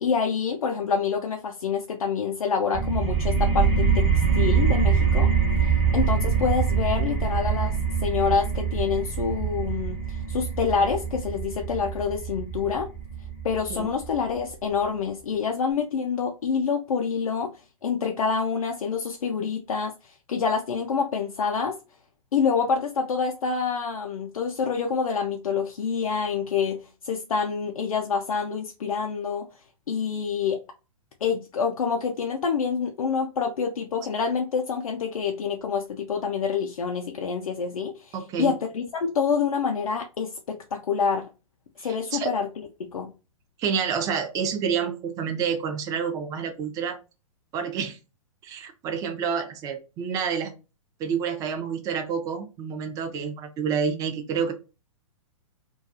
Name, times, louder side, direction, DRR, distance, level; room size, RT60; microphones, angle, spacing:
voice 1, 0.0-5.3 5.6-7.8 8.0-12.9 13.4-17.5 17.8-21.8 22.3-26.8 27.0-29.5 29.9-30.6 31.2-41.3 41.8-43.1, left 6 dB, 80° left, 0.4 m, -27 dB
sound 1, 2.7-14.1, right 6 dB, 35° right, 0.9 m, -24 dB
voice 2, 38.1-38.6 41.8-42.3 43.6-47.0 47.5-48.0 48.4-50.5 51.0-54.5, right 6 dB, 20° right, 0.4 m, -28 dB
2.3 x 2.3 x 2.6 m
hypercardioid pair, 115°, 18 cm